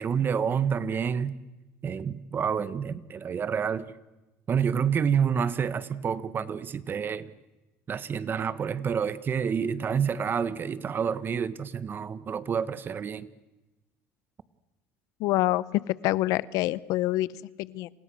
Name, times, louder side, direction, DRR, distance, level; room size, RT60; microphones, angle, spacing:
voice 1, 0.0-1.3 1.8-3.9 4.5-7.3 7.9-13.3, right 7 dB, 35° right, 15 dB, 1.5 m, -28 dB
voice 2, 15.2-17.9, left 17 dB, 70° left, 20 dB, 0.9 m, -27 dB
30.0 x 28.0 x 6.4 m, 1.0 s
cardioid pair, 110°, 6 cm